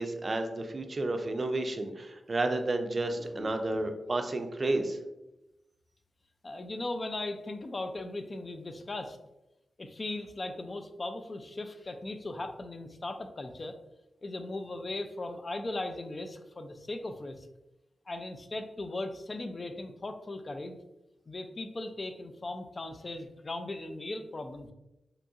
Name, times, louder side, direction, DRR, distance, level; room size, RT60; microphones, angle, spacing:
voice 1, 0.0-5.0, right 2 dB, 45° right, 6 dB, 0.4 m, -31 dB
voice 2, 3.2-3.8 6.4-9.2 9.8-13.8 14.2-17.5 18.1-20.8 21.3-24.7, left 2 dB, 45° left, 7 dB, 0.3 m, -38 dB
2.8 x 2.6 x 2.3 m, 0.95 s
cardioid pair, 50°, 0 cm